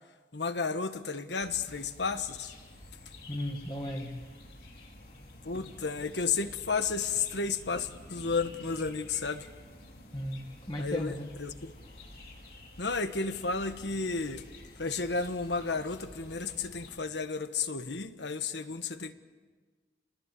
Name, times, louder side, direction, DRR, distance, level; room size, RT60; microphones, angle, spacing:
voice 1, 0.3-2.5 5.4-9.5 10.8-11.7 12.8-14.4 14.8-19.1, left 4 dB, 90° left, 10 dB, 1.4 m, -32 dB
sound 1, 1.4-17.0, left 1 dB, 60° left, 5.5 m, -50 dB
voice 2, 3.3-4.1 10.1-11.3, equal, 25° left, 1 dB, 2.1 m, -35 dB
28.5 x 20.5 x 8.5 m, 1.4 s
head